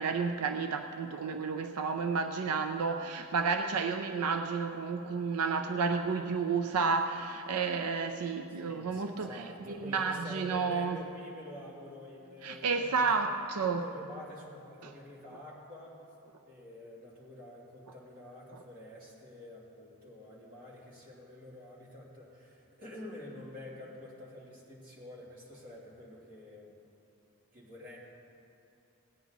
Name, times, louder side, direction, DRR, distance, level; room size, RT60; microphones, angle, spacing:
voice 1, 0.0-11.0 12.4-13.9 14.8-14.9, right 5 dB, 85° right, 6 dB, 0.5 m, -31 dB
voice 2, 8.5-13.3 13.6-16.0 16.5-26.7 27.5-28.0, left 1 dB, 40° right, -6 dB, 2.8 m, -48 dB
17.5 x 9.3 x 4.0 m, 2.8 s
head